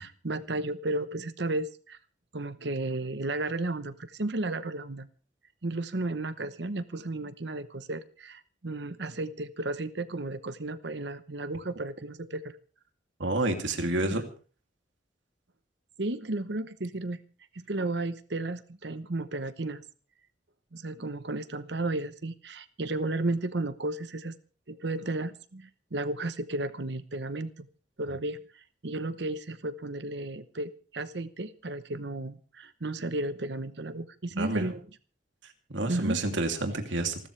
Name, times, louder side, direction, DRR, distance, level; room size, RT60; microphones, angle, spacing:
voice 1, 0.0-2.0 2.3-5.1 5.6-12.5 14.0-14.2 16.0-17.2 17.5-19.8 20.7-24.3 24.7-27.7 28.0-28.4 28.8-34.8 35.9-36.2, right 2 dB, 65° right, 12 dB, 1.0 m, -33 dB
voice 2, 13.2-14.2 34.4-34.7 35.7-37.3, right 2 dB, 80° right, 4 dB, 2.8 m, -29 dB
27.5 x 13.5 x 3.3 m, 0.39 s
head